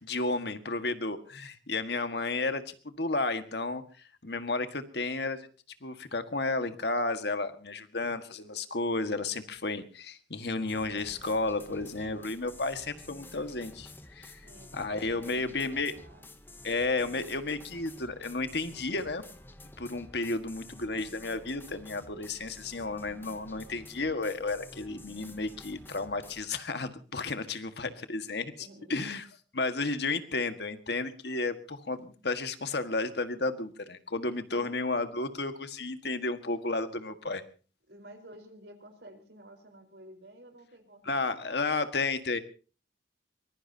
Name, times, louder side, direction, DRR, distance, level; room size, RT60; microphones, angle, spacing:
voice 1, 0.0-5.5 5.8-15.9 16.6-19.2 19.8-29.3 29.5-37.4 41.0-42.4, left 3 dB, 65° left, 9 dB, 1.7 m, -32 dB
sound 1, 10.7-26.4, left 2 dB, 10° left, 1.1 m, -51 dB
voice 2, 14.4-16.3 28.6-29.0 34.5-34.7 37.9-41.3, right 1 dB, 65° right, 5 dB, 4.3 m, -52 dB
23.5 x 20.5 x 2.8 m, 0.38 s
head